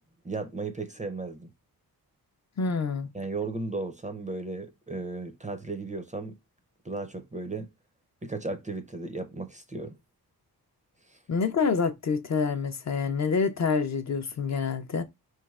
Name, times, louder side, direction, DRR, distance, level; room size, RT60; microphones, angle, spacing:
voice 1, 0.2-1.5 3.1-6.4 6.8-7.7 8.2-9.9 11.1-11.2, right 3 dB, 20° right, 0.4 m, -35 dB
voice 2, 2.6-3.1 11.3-15.0, left 5 dB, 45° left, 0.4 m, -27 dB
4.6 x 3.2 x 2.3 m
wide cardioid pair, 115°, 39 cm